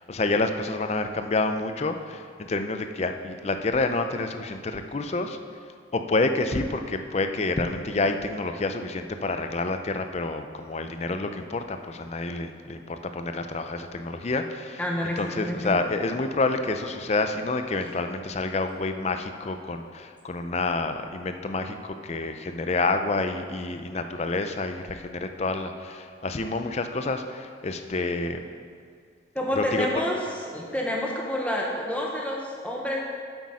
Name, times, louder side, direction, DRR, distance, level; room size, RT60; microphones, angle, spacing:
voice 1, 0.0-5.4 5.9-14.8 15.2-28.4 29.5-29.9, left 3 dB, 35° left, 7 dB, 0.5 m, -28 dB
voice 2, 14.8-15.8 29.3-30.2 30.5-33.0, left 1 dB, 5° left, -2 dB, 0.8 m, -28 dB
8.3 x 8.1 x 4.9 m, 2.1 s
head